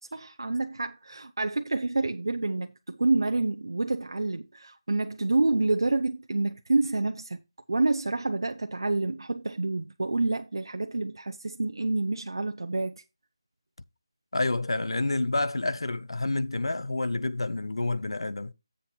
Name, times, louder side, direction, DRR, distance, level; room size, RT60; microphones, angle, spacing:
voice 1, 0.1-7.4 7.7-13.0, right 2 dB, 60° right, 0.5 m, -28 dB
voice 2, 14.3-18.5, left 2 dB, 85° left, 0.7 m, -28 dB
7.7 x 4.4 x 6.7 m
figure-of-eight pair, 180°, 3 cm